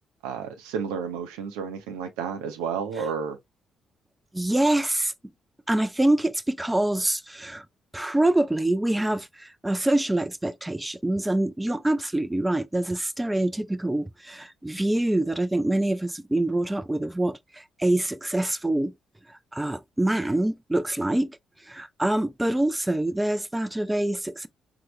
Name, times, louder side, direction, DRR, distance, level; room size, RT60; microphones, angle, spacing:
voice 1, 0.2-3.4, right 6 dB, 75° right, 0.6 m, -31 dB
voice 2, 4.3-5.1 5.7-7.7 7.9-18.9 19.5-21.4 21.7-24.5, right 1 dB, 15° right, 0.4 m, -25 dB
4.4 x 2.1 x 3.1 m
hypercardioid pair, 40°, 0 cm